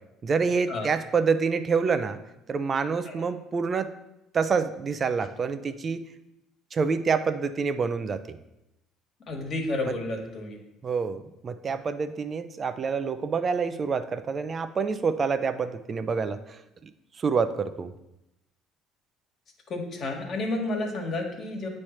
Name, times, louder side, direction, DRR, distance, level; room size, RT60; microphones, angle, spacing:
voice 1, 0.2-2.2 2.5-3.9 4.3-6.0 6.7-8.2 9.8-9.9 10.8-16.9 17.2-17.9, right 5 dB, 35° right, 11 dB, 0.4 m, -27 dB
voice 2, 9.3-10.6 19.7-21.7, left 2 dB, 50° left, 1 dB, 1.5 m, -31 dB
8.5 x 3.2 x 4.4 m, 0.89 s
supercardioid pair, 90°, 0 cm